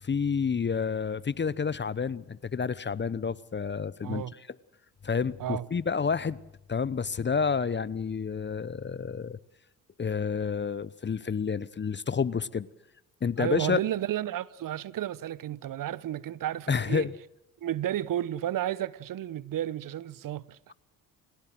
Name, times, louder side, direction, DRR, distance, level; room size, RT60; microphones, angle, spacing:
voice 1, 0.0-4.2 5.0-6.4 6.7-9.4 10.0-12.7 13.2-13.8 16.7-17.1, left 6 dB, 25° left, 0.9 m, -29 dB
voice 2, 13.4-17.1 17.6-20.7, right 12 dB, 50° right, 1.0 m, -32 dB
29.5 x 16.5 x 7.7 m
hypercardioid pair, 50°, 42 cm